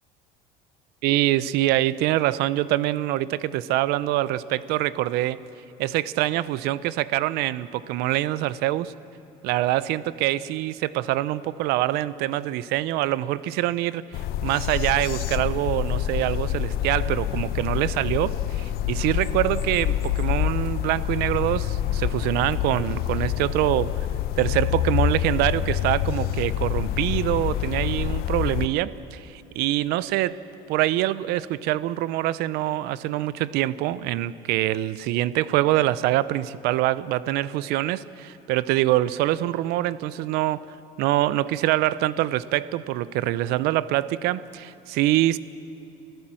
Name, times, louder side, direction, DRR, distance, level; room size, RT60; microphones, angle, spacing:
voice 1, 1.0-5.4 5.8-8.9 9.4-14.0 14.4-24.1 24.4-30.4 30.7-40.6 41.0-45.4, right 15 dB, 75° right, 18 dB, 0.7 m, -25 dB
sound 1, 14.1-28.7, left 12 dB, 65° left, 0.8 m, -27 dB
25.0 x 15.5 x 7.6 m, 3.0 s
cardioid pair, 135°, 17 cm